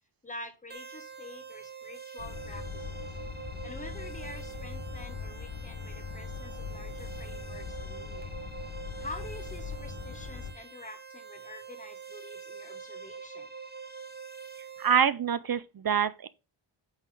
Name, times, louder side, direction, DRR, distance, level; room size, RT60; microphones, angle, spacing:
voice 1, 0.2-3.1 3.6-8.3 9.0-13.5, left 2 dB, 15° left, 1.1 m, -47 dB
sound 1, 0.7-15.0, right 6 dB, 20° right, 1.1 m, -45 dB
sound 2, 2.2-10.5, left 6 dB, 70° left, 1.5 m, -41 dB
voice 2, 14.8-16.3, right 8 dB, 50° right, 0.5 m, -26 dB
8.2 x 4.0 x 4.7 m
wide cardioid pair, 145°, 49 cm